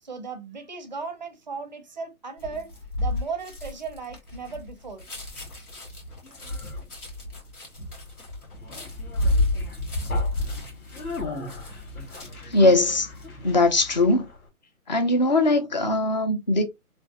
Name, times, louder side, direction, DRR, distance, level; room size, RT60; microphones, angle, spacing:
voice 1, 0.0-2.7 3.0-5.1, right 5 dB, 30° right, 0.5 m, -36 dB
sound 1, 2.4-12.6 12.9-13.3, left 2 dB, 90° left, 1.7 m, -30 dB
Conversation, 5.0-14.5, left 3 dB, 75° left, 1.3 m, -41 dB
voice 2, 12.5-13.1 13.4-14.3 14.9-16.6, left 2 dB, 35° left, 0.4 m, -20 dB
3.1 x 2.1 x 2.7 m
figure-of-eight pair, 145°, 44 cm